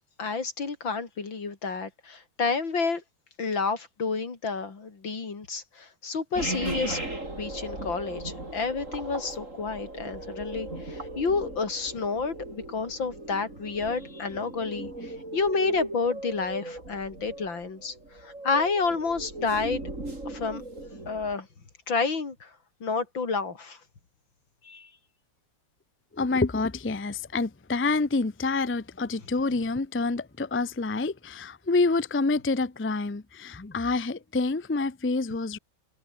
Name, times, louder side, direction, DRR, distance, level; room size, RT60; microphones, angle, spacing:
voice 1, 0.2-3.0 3.4-7.0 7.4-17.9 18.2-19.8 20.3-20.6 21.1-21.5 21.9-22.5 22.8-23.8 24.6-24.9, left 4 dB, 85° left, 4.2 m, -30 dB
sound 1, 6.3-21.3, right 2 dB, 40° right, 6.8 m, -37 dB
voice 2, 26.1-35.6, left 3 dB, 20° left, 0.3 m, -27 dB
omnidirectional pair, 2.0 m